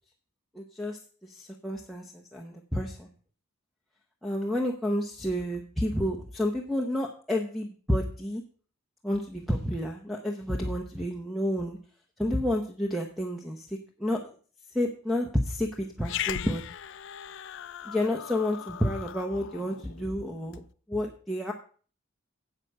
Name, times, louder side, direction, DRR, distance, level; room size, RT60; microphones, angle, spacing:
voice 1, 0.5-3.1 4.2-8.4 9.0-11.8 12.2-14.3 14.7-16.6 17.8-20.6 20.9-21.5, left 1 dB, ahead, -2 dB, 0.9 m, -30 dB
Growling, 16.0-20.6, left 10 dB, 55° left, 0.4 m, -38 dB
8.2 x 8.1 x 6.5 m, 0.42 s
head